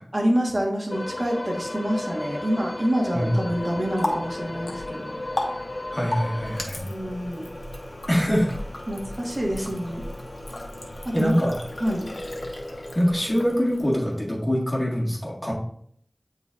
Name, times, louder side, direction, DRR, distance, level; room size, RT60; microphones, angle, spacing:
voice 1, 0.1-5.2 6.8-7.4 8.9-10.0 11.0-11.4 11.8-12.1, equal, 45° right, -1 dB, 1.6 m, -27 dB
sound 1, 0.9-6.6, left 2 dB, 65° left, 0.4 m, -34 dB
Water tap faucet, 3.5-14.3, left 1 dB, 85° left, 0.8 m, -35 dB
voice 2, 5.9-6.8 8.1-8.5 11.1-11.6 13.0-15.5, equal, 40° left, -4 dB, 1.9 m, -23 dB
8.9 x 4.0 x 2.6 m, 0.64 s
wide cardioid pair, 40°, 0 cm